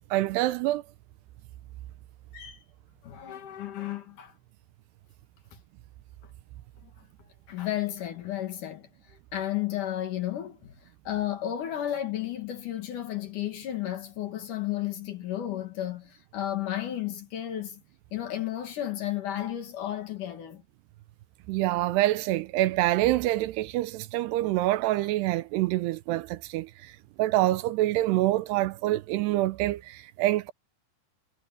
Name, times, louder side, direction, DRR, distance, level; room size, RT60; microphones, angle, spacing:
voice 1, 0.1-0.8 21.5-26.9 27.2-30.5, right 16 dB, 85° right, 2.7 m, -26 dB
voice 2, 3.0-4.3 6.8-6.9 7.5-17.8 18.1-20.6, left 12 dB, 55° left, 2.8 m, -33 dB
omnidirectional pair, 4.9 m